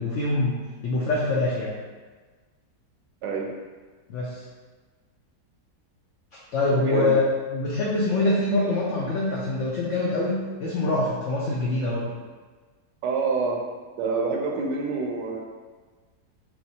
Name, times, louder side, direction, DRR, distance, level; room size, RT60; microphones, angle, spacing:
voice 1, 0.0-1.7 4.1-4.4 6.5-7.2 7.5-12.1, left 2 dB, 80° left, -5 dB, 0.6 m, -24 dB
voice 2, 6.7-7.1 13.0-13.6 14.0-15.4, right 4 dB, 80° right, 0 dB, 1.2 m, -26 dB
3.4 x 3.1 x 2.7 m, 1.4 s
omnidirectional pair, 1.9 m